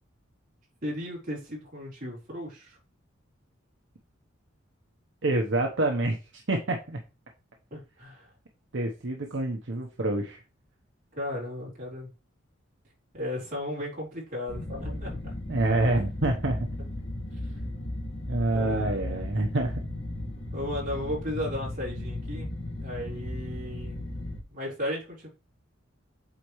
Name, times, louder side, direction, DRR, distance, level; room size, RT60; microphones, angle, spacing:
voice 1, 0.8-2.8 7.7-8.3 11.1-12.1 13.1-15.3 18.5-19.3 20.5-22.5 22.8-24.0 24.5-25.3, left 1 dB, 45° right, -4 dB, 4.3 m, -35 dB
voice 2, 5.2-7.0 8.7-10.4 15.5-16.7 18.3-19.8, right 2 dB, 65° right, 2 dB, 1.0 m, -27 dB
sound 1, 14.5-24.4, left 1 dB, 65° left, 1.7 m, -35 dB
8.4 x 4.2 x 3.1 m, 0.30 s
head